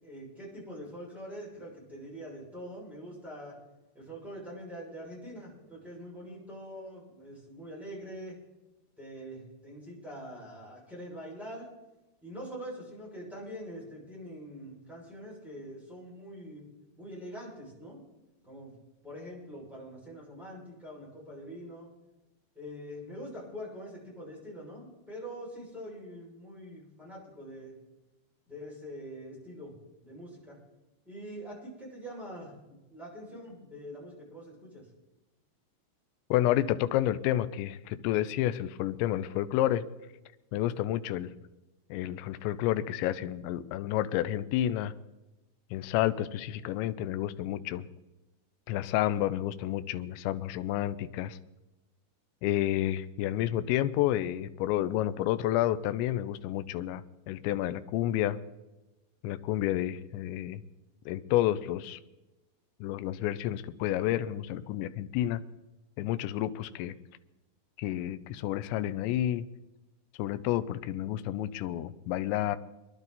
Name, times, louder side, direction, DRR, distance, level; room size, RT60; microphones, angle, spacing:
voice 1, 0.0-3.6 3.9-8.4 9.0-11.7 12.2-16.6 17.0-18.0 18.4-18.7 19.0-21.9 22.5-27.7 28.5-29.7 30.0-30.6 31.0-34.9, equal, ahead, -6 dB, 5.8 m, -44 dB
voice 2, 36.3-39.9 40.5-41.3 41.9-44.9 45.7-47.9 48.7-51.4 52.4-58.4 59.2-60.6 61.1-62.0 62.8-65.4 66.0-67.0 67.8-69.5 70.2-72.6, left 13 dB, 80° left, 12 dB, 2.8 m, -30 dB
23.5 x 11.0 x 4.1 m, 1.0 s
omnidirectional pair, 5.5 m